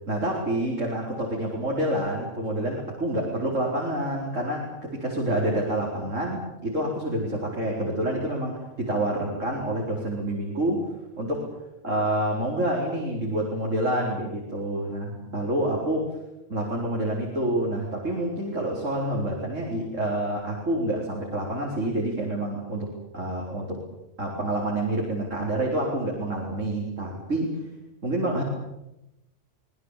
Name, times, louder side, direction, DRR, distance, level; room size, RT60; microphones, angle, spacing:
voice 1, 0.1-10.8 11.2-11.4 11.8-16.1 16.5-22.9 23.1-23.8 24.2-27.6 28.0-28.4, right 1 dB, 85° right, -2 dB, 4.8 m, -28 dB
24.5 x 21.0 x 8.3 m, 0.93 s
omnidirectional pair, 1.3 m